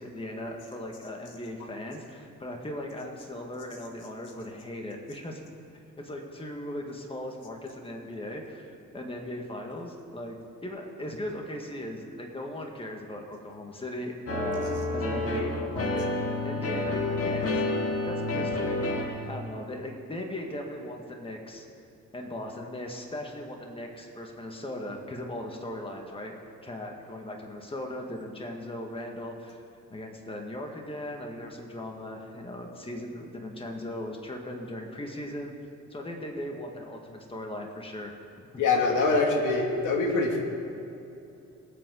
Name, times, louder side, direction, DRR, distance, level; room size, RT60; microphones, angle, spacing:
voice 1, 0.0-5.4 6.0-10.4 10.6-16.1 16.4-17.6 18.1-18.9 19.3-21.7 22.1-26.3 26.6-29.6 29.9-35.5 35.9-38.1 38.4-38.6, left 1 dB, 20° left, 1 dB, 1.9 m, -38 dB
sound 1, 14.3-19.2, left 2 dB, 50° left, 2.4 m, -29 dB
voice 2, 38.6-40.4, left 3 dB, 80° left, 0 dB, 2.5 m, -24 dB
24.0 x 8.4 x 4.0 m, 2.8 s
cardioid pair, 90°, 30 cm